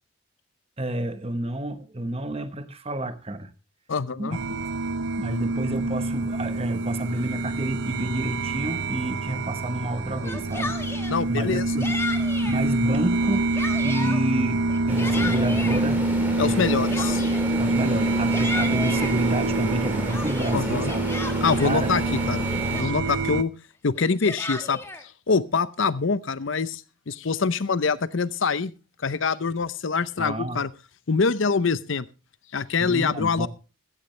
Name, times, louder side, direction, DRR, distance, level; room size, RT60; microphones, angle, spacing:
voice 1, 0.8-3.5 4.2-4.6 5.2-10.8 11.3-11.9 12.4-13.5 13.8-16.1 16.4-16.8 17.6-21.0 21.6-21.9 30.2-30.6 32.8-33.5, right 1 dB, 30° right, 10 dB, 1.1 m, -29 dB
voice 2, 3.9-4.4 11.1-11.6 16.4-17.3 20.5-20.9 21.4-22.0 22.3-23.5 23.8-28.7 29.0-30.7 31.1-32.1 32.5-33.5, left 4 dB, 70° left, 16 dB, 0.7 m, -25 dB
sound 1, 4.3-23.4, right 2 dB, 55° right, 0.7 m, -26 dB
Yell, 10.1-11.2 11.8-12.6 13.1-14.2 14.7-15.8 16.6-17.5 18.0-19.1 19.7-21.8 22.4-22.5 22.7-23.2 24.0-25.0, left 2 dB, 10° left, 1.3 m, -34 dB
sound 2, 14.9-22.8, equal, 10° right, 3.4 m, -33 dB
15.5 x 13.0 x 3.2 m, 0.31 s
head